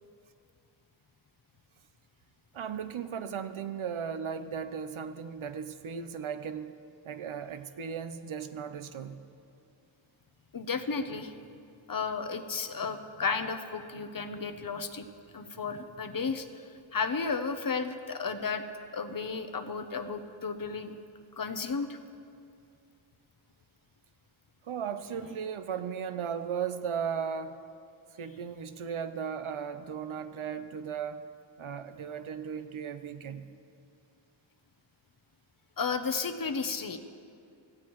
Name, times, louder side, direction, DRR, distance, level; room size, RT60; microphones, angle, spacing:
voice 1, 2.5-6.7 7.0-9.2 24.6-27.6 28.2-31.2 31.6-33.4, right 7 dB, 80° right, 10 dB, 0.7 m, -36 dB
voice 2, 10.5-11.3 11.9-15.1 15.3-18.6 18.9-20.9 21.4-22.0 35.8-37.0, left 5 dB, 45° left, 8 dB, 0.8 m, -33 dB
17.5 x 14.5 x 3.1 m, 2.4 s
wide cardioid pair, 100°, 48 cm